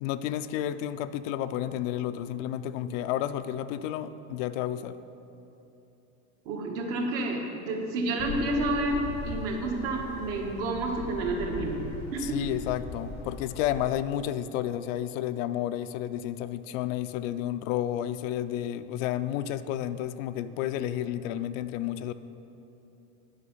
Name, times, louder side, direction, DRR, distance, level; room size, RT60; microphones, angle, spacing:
voice 1, 0.0-5.0 12.2-22.1, left 11 dB, 75° left, 12 dB, 0.5 m, -31 dB
voice 2, 6.4-11.8 12.1-12.4, right 2 dB, 60° right, 1 dB, 1.5 m, -30 dB
sound 1, 8.2-14.0, left 4 dB, 25° left, 0.5 m, -40 dB
9.7 x 5.8 x 5.4 m, 2.9 s
cardioid pair, 165°, 39 cm